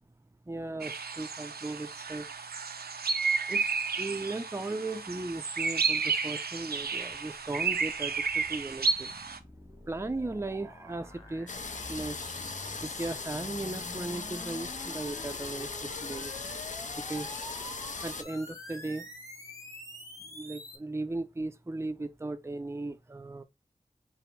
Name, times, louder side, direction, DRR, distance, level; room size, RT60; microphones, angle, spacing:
voice 1, 0.5-2.2 3.5-3.7 4.0-9.1 9.9-11.6 11.9-12.2 12.8-16.3 17.1-17.4 18.0-19.1 20.3-23.4, right 2 dB, 15° right, 0.5 m, -37 dB
sound 1, 0.8-9.4, right 5 dB, 85° right, 0.5 m, -32 dB
sound 2, 7.4-20.8, left 1 dB, 20° left, 1.5 m, -47 dB
sound 3, 11.5-18.2, left 4 dB, 50° left, 0.5 m, -39 dB
5.0 x 2.1 x 4.5 m
wide cardioid pair, 45°, 16 cm